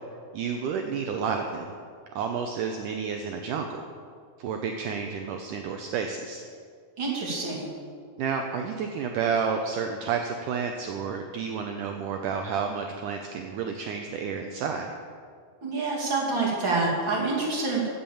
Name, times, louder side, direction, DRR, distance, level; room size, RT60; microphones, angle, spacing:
voice 1, 0.3-1.7 2.2-3.8 4.4-6.4 8.2-14.9, right 6 dB, 75° right, 4 dB, 2.0 m, -30 dB
voice 2, 7.0-7.7 15.6-17.9, right 3 dB, 35° right, -3 dB, 3.0 m, -27 dB
15.5 x 7.2 x 7.1 m, 2.1 s
omnidirectional pair, 4.3 m